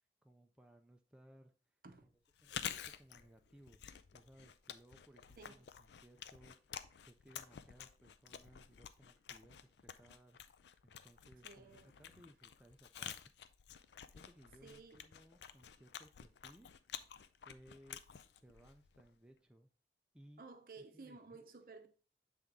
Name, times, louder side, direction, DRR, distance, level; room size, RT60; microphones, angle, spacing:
voice 1, 0.2-1.5 2.0-2.1 2.4-3.8 4.1-10.4 10.8-13.3 14.1-16.7 17.5-18.0 18.4-19.7 20.1-20.4 20.8-21.4, right 1 dB, 5° right, 0.3 m, -63 dB
Chewing mastication, 2.3-19.2, left 9 dB, 80° left, 0.4 m, -51 dB
voice 2, 11.4-11.9 14.6-15.0 20.4-21.9, right 4 dB, 50° right, 0.7 m, -55 dB
7.5 x 3.5 x 3.8 m
head